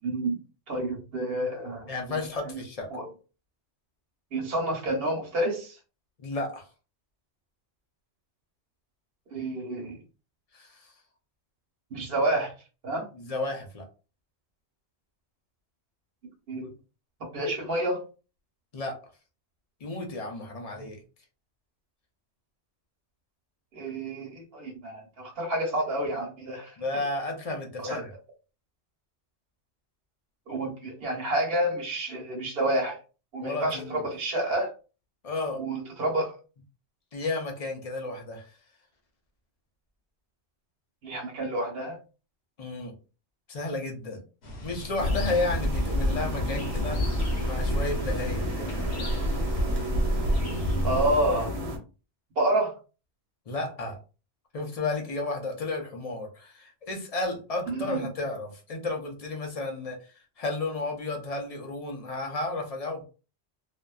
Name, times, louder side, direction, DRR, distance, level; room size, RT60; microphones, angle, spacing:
voice 1, 0.0-0.4 0.7-1.9 2.4-2.6 2.9-3.1 4.3-5.8 9.3-10.0 11.9-12.5 12.8-13.1 16.5-16.7 17.2-18.0 23.7-26.7 27.8-28.1 30.5-33.0 33.3-34.7 35.5-36.3 41.0-42.0 50.8-51.6 52.4-52.7 57.7-58.0, right 1 dB, 60° right, 0 dB, 1.0 m, -29 dB
voice 2, 1.9-2.9 6.2-6.7 10.5-10.9 13.1-13.9 18.7-19.0 19.8-21.0 26.8-28.1 33.4-34.1 35.2-35.6 37.1-38.5 42.6-43.0 43.5-44.2 44.6-48.7 53.5-54.0 54.5-60.0 60.4-63.0, left 2 dB, 45° left, 2 dB, 0.5 m, -32 dB
sound 1, 44.4-51.2, equal, 65° left, 1.0 m, -31 dB
sound 2, 45.0-51.8, equal, 40° right, 0.6 m, -30 dB
2.5 x 2.1 x 2.2 m, 0.33 s
omnidirectional pair, 1.2 m